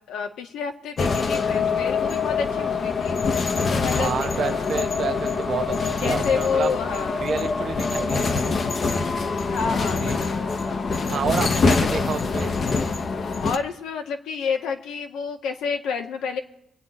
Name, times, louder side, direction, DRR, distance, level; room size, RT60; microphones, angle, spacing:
voice 1, 0.1-4.7 6.0-7.2 9.5-10.9 13.4-16.4, left 6 dB, 85° left, 4 dB, 1.5 m, -29 dB
sound 1, 1.0-13.6, left 4 dB, 45° left, 1.0 m, -24 dB
voice 2, 3.9-6.8 7.2-9.0 10.0-10.2 11.1-12.6, right 6 dB, 60° right, 8 dB, 1.0 m, -29 dB
25.0 x 8.8 x 4.3 m, 0.76 s
cardioid pair, 90°, 0 cm